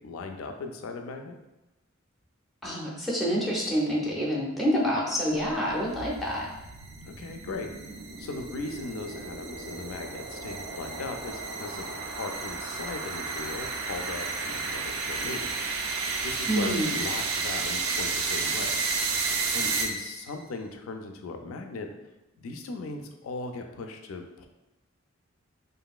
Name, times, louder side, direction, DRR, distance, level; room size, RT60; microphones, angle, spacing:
voice 1, 0.0-1.4 7.1-7.7 8.2-15.5 16.2-18.8 19.5-21.9 22.4-24.5, left 3 dB, 80° left, 5 dB, 0.4 m, -38 dB
voice 2, 2.6-6.5 16.5-17.0, equal, ahead, -5 dB, 0.4 m, -27 dB
sound 1, 5.5-20.3, right 4 dB, 75° right, 0.4 m, -32 dB
3.0 x 2.5 x 2.3 m, 1.0 s
head